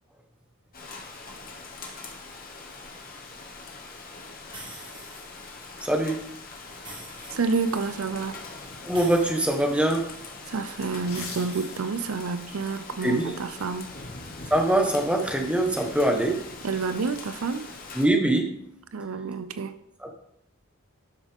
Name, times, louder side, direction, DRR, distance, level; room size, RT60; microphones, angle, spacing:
Rain, 0.7-18.1, left 3 dB, 40° left, 1.4 m, -42 dB
sound 1, 4.5-5.4 6.7-7.9 8.9-10.3 11.1-12.4, right 2 dB, 20° right, 1.8 m, -45 dB
voice 1, 5.8-6.3 8.8-10.1 13.0-13.3 14.5-16.5 17.9-18.6 20.0-20.1, right 1 dB, 5° right, 1.2 m, -23 dB
voice 2, 7.3-8.4 10.5-13.9 16.6-17.7 18.9-19.8, right 4 dB, 75° right, 0.6 m, -29 dB
sound 2, 11.1-12.1 12.5-12.7, left 5 dB, 75° left, 2.0 m, -40 dB
12.0 x 6.5 x 3.6 m
head